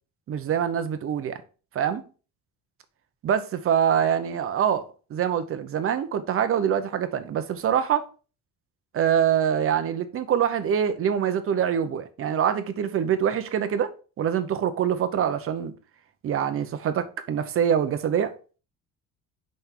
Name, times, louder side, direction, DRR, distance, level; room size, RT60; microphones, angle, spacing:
voice 1, 0.3-1.4 1.7-2.0 3.2-8.0 8.9-13.9 14.2-15.7 16.2-18.3, right 8 dB, 40° right, 0.8 m, -24 dB
5.9 x 5.3 x 4.4 m
cardioid pair, 160°, 33 cm